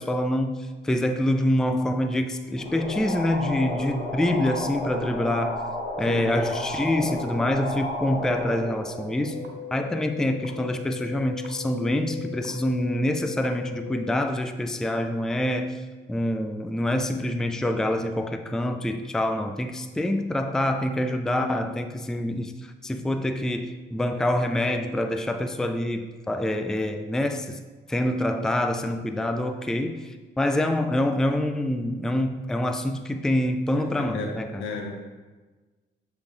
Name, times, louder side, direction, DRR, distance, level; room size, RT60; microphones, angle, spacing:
voice 1, 0.0-5.6 6.0-9.4 9.7-15.8 16.1-22.5 22.8-27.6 27.9-34.7, left 1 dB, 5° left, 8 dB, 0.4 m, -26 dB
sound 1, 2.6-9.9, left 1 dB, 55° left, 1.8 m, -32 dB
sound 2, 9.2-14.2, left 10 dB, 65° right, 0.9 m, -39 dB
voice 2, 33.7-35.0, left 4 dB, 85° left, 2 dB, 1.1 m, -35 dB
7.1 x 3.9 x 3.8 m, 1.3 s
cardioid pair, 90°, 20 cm